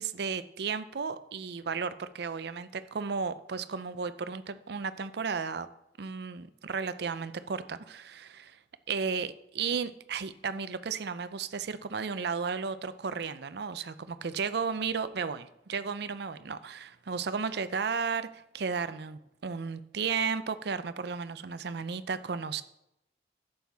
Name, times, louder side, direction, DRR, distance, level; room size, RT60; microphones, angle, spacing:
voice 1, 0.0-5.7 6.0-8.6 8.9-22.6, right 5 dB, 60° right, 13 dB, 0.5 m, -34 dB
11.5 x 7.7 x 3.5 m, 0.85 s
head